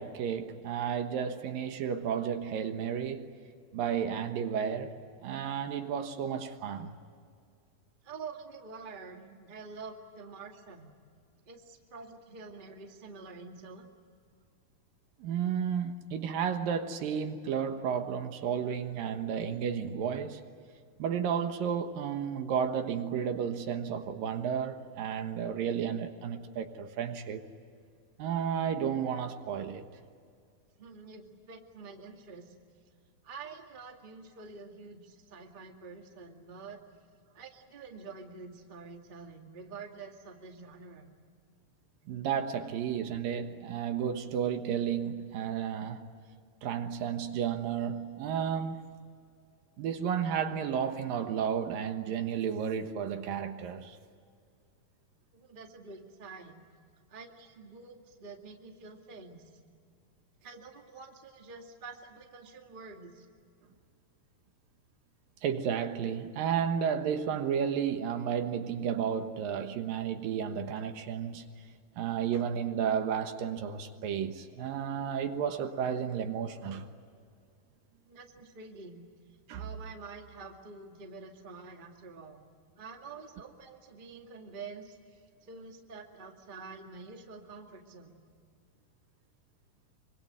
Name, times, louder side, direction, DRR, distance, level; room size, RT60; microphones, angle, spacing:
voice 1, 0.0-3.3 3.7-4.9 5.2-6.9 15.2-20.4 21.0-27.4 28.2-29.9 42.1-46.1 46.6-48.8 49.8-54.0 65.4-71.4 72.0-76.9 79.5-79.6, right 8 dB, 70° right, 2.9 m, -32 dB
voice 2, 8.0-10.9 11.4-13.9 30.8-32.5 33.2-36.8 37.3-41.1 55.3-56.7 57.1-59.4 60.4-63.3 78.0-79.0 79.5-82.4 82.8-88.2, right 4 dB, 20° right, 1.5 m, -47 dB
25.0 x 25.0 x 9.2 m
omnidirectional pair, 4.3 m